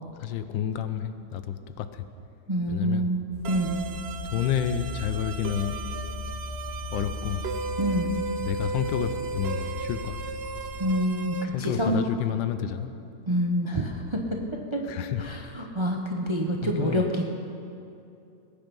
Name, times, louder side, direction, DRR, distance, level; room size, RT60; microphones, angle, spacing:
voice 1, 0.1-2.1 2.7-3.1 4.3-5.8 6.9-7.4 8.4-10.4 11.5-13.0 14.8-15.7 16.6-17.1, left 9 dB, 80° left, 10 dB, 1.4 m, -30 dB
voice 2, 2.5-3.2 3.5-3.7 7.8-8.1 10.8-12.0 13.3-14.2 14.7-14.8 15.2-17.2, equal, 25° right, 1 dB, 0.6 m, -27 dB
sound 1, 3.3-11.0, left 4 dB, 60° left, 1.7 m, -38 dB
sound 2, 3.4-11.4, right 4 dB, 80° right, 0.5 m, -35 dB
19.5 x 9.1 x 5.4 m, 2.6 s
omnidirectional pair, 2.0 m